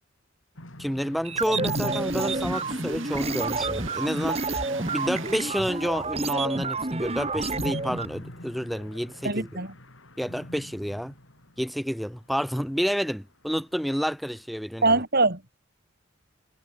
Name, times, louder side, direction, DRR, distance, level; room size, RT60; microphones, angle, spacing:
sound 1, 0.5-12.7, left 1 dB, 70° left, 5.7 m, -41 dB
voice 1, 0.8-4.4 4.9-9.5 10.2-11.1 11.6-15.0, equal, ahead, 4.4 m, -29 dB
sound 2, 1.2-8.1, right 3 dB, 30° right, 3.2 m, -29 dB
sound 3, 1.9-6.4, right 5 dB, 70° right, 5.9 m, -42 dB
voice 2, 9.2-9.7 14.8-15.5, right 3 dB, 50° right, 7.4 m, -23 dB
head